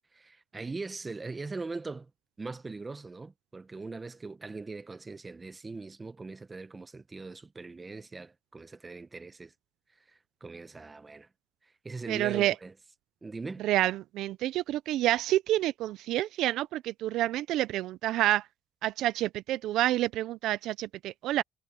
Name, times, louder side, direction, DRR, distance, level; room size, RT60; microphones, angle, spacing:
voice 1, 0.1-2.1 2.4-9.5 10.1-11.3 11.8-12.7 13.2-13.6, right 3 dB, 25° right, 1.0 m, -41 dB
voice 2, 12.1-12.5 13.6-18.4 18.8-21.4, right 14 dB, 90° right, 0.4 m, -28 dB
cardioid pair, 90°, 0 cm